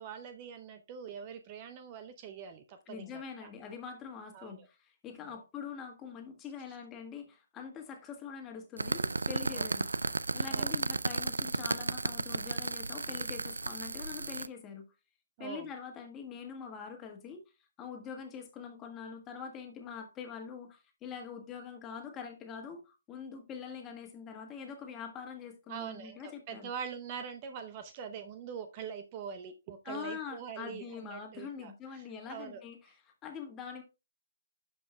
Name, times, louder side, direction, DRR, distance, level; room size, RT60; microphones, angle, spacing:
voice 1, 0.0-3.5 4.3-4.7 5.2-5.4 9.5-9.6 10.5-10.7 15.4-15.7 25.7-32.6, right 7 dB, 30° right, 0.7 m, -43 dB
voice 2, 2.9-9.9 10.3-14.8 15.4-17.4 17.8-26.7 29.8-33.8, left 6 dB, 20° left, 1.6 m, -44 dB
sound 1, 8.8-14.5, right 3 dB, 85° right, 0.3 m, -34 dB
12.0 x 5.3 x 2.2 m
figure-of-eight pair, 140°, 0 cm